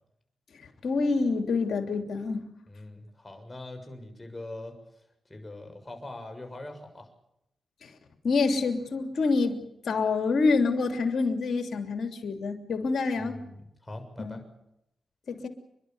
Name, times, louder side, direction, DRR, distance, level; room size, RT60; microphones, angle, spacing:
voice 1, 0.6-2.4 7.8-7.9 8.2-13.4 14.2-14.4 15.3-15.5, left 4 dB, 75° left, 6 dB, 2.9 m, -27 dB
voice 2, 2.7-7.1 13.2-14.4, left 2 dB, 25° left, 5 dB, 6.8 m, -43 dB
29.5 x 11.5 x 9.4 m, 0.81 s
cardioid pair, 60°, 0 cm